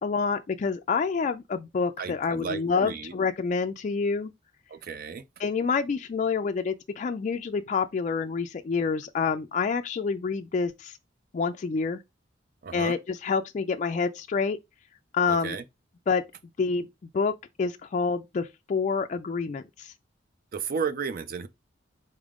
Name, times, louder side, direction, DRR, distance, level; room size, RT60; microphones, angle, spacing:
voice 1, 0.0-4.3 5.4-10.9 11.3-12.0 12.7-14.6 15.1-15.6 16.1-16.2 16.6-16.9 17.1-19.9, left 5 dB, 40° left, 0.3 m, -27 dB
voice 2, 2.0-3.1 4.7-5.2 12.6-12.9 15.3-15.6 20.5-21.5, right 5 dB, 50° right, 0.4 m, -33 dB
4.3 x 3.5 x 3.6 m
head